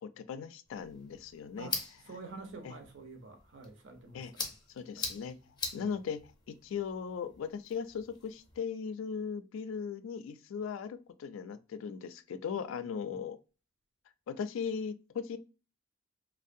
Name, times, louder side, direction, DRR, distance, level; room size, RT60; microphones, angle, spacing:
voice 1, 0.0-1.7 2.6-2.8 4.1-4.3 4.7-13.4 14.3-15.4, left 6 dB, 90° left, 0.3 m, -38 dB
sound 1, 0.7-8.6, left 4 dB, 20° left, 0.5 m, -44 dB
voice 2, 2.1-4.6 4.9-5.1 5.7-5.9 13.1-13.2, right 3 dB, 70° right, 0.7 m, -48 dB
2.6 x 2.0 x 2.5 m
head